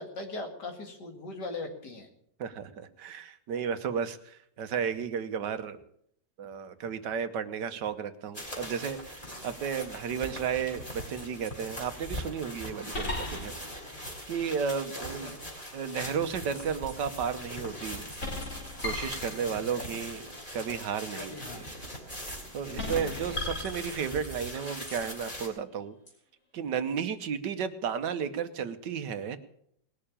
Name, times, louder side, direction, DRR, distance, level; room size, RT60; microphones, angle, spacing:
voice 1, 0.0-2.1 15.0-15.4 19.4-20.0 20.3-20.4 21.1-21.7 22.6-23.2, left 2 dB, 70° left, 4 dB, 2.8 m, -41 dB
voice 2, 2.4-5.8 6.4-13.5 14.3-15.3 15.7-18.1 18.8-21.3 22.5-26.0 26.5-29.4, right 7 dB, 75° right, 10 dB, 1.6 m, -33 dB
sound 1, 8.3-25.5, equal, 20° left, 4.2 m, -41 dB
sound 2, 10.3-10.8 11.5-11.6 12.9-13.8 16.5-17.0 18.1-19.7 22.1-22.4 22.8-24.3 24.9-25.2 26.1-26.2, left 2 dB, 45° left, 4.5 m, -37 dB
19.5 x 6.8 x 8.6 m, 0.71 s
omnidirectional pair, 1.9 m